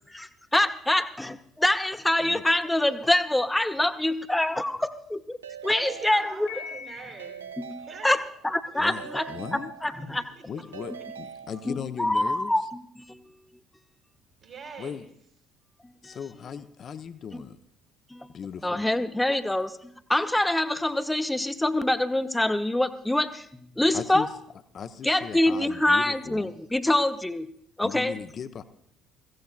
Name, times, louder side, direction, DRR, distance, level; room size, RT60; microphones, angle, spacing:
voice 1, 0.1-5.4 5.6-6.5 7.6-10.3 10.9-11.0 11.6-13.3 16.0-16.2 17.3-17.4 18.1-18.3 18.6-24.3 25.0-27.5 27.8-28.1, left 1 dB, 10° left, 9 dB, 0.9 m, -25 dB
Keyboard (musical) / Ringtone, 5.4-6.8 7.2-8.5 9.0-10.3 10.7-12.1, right 7 dB, 80° right, 0.4 m, -43 dB
voice 2, 5.6-7.5 7.8-8.1 10.2-10.3 10.5-10.6 14.4-15.0, right 5 dB, 55° right, 0 dB, 2.5 m, -43 dB
Piano, 6.5-7.6, left 8 dB, 65° left, 1.4 m, -41 dB
voice 3, 8.8-9.7 10.5-12.5 14.8-15.1 16.0-17.6 18.3-18.9 23.9-24.3 24.7-26.5 27.8-28.6, left 7 dB, 45° left, 10 dB, 0.7 m, -37 dB
22.0 x 15.5 x 2.4 m, 0.68 s
figure-of-eight pair, 50°, 0 cm